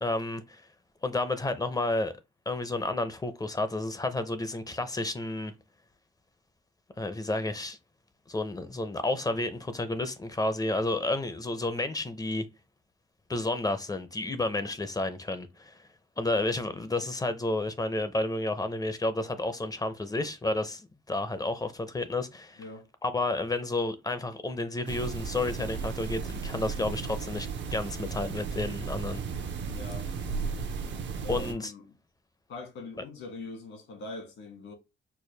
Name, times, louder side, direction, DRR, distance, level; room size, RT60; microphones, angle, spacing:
voice 1, 0.0-0.6 1.0-2.1 2.5-5.5 7.0-7.8 8.3-12.5 13.3-15.7 16.2-22.6 23.0-29.2 31.3-31.7, left 2 dB, 20° left, 0.6 m, -31 dB
sound 1, 24.9-31.5, right 5 dB, 65° right, 0.8 m, -35 dB
voice 2, 29.7-30.1 31.2-31.8 32.5-34.7, left 2 dB, 75° left, 1.9 m, -42 dB
4.6 x 2.1 x 3.2 m
cardioid pair, 90°, 20 cm